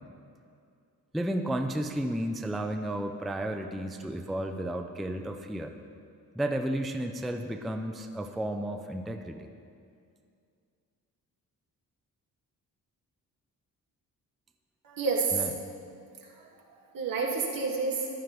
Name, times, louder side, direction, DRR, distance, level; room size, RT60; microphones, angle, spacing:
voice 1, 1.1-5.7 6.4-9.5 15.3-15.5, right 1 dB, ahead, 5 dB, 0.3 m, -32 dB
voice 2, 14.8-15.5 16.2-18.1, right 4 dB, 75° right, -1 dB, 1.8 m, -30 dB
14.5 x 11.5 x 3.1 m, 2.4 s
wide cardioid pair, 170°, 34 cm